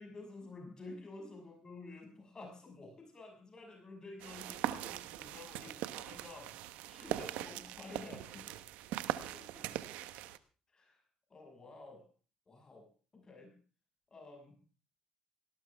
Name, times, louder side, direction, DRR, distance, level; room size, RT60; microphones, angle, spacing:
voice 1, 0.0-6.6 6.9-8.6 9.3-9.8 10.7-11.0 11.3-12.1 12.5-12.9 13.1-13.6 14.1-14.6, left 3 dB, 30° left, 4 dB, 6.3 m, -51 dB
sound 1, 4.2-10.4, right 14 dB, 85° right, 1.1 m, -41 dB
19.0 x 18.0 x 3.5 m, 0.37 s
supercardioid pair, 75°, 2 cm